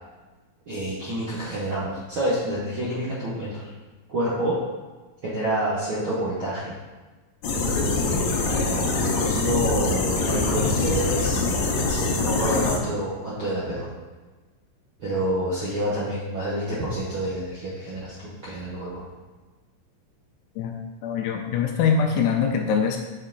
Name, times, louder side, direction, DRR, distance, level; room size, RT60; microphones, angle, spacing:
voice 1, 0.7-3.7 4.1-4.6 5.2-6.7 7.5-13.9 15.0-19.0, right 1 dB, 70° right, -8 dB, 1.2 m, -28 dB
sound 1, 7.4-12.8, left 3 dB, 75° left, 1.6 m, -24 dB
voice 2, 20.6-23.0, left 6 dB, 90° left, 3 dB, 1.7 m, -23 dB
6.5 x 4.5 x 3.8 m, 1.3 s
omnidirectional pair, 4.0 m